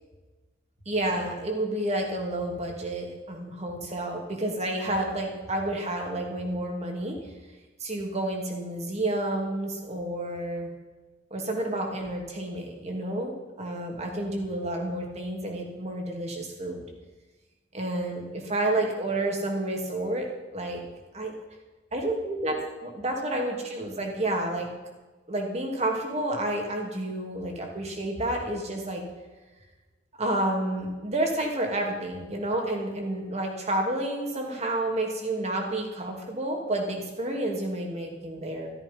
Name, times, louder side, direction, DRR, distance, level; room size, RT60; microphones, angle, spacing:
voice 1, 0.9-7.3 7.8-10.7 11.3-16.9 17.7-20.8 21.1-21.3 21.9-24.7 25.3-29.0 30.2-38.7, right 1 dB, 35° right, 1 dB, 2.8 m, -30 dB
13.5 x 13.5 x 5.5 m, 1.2 s
head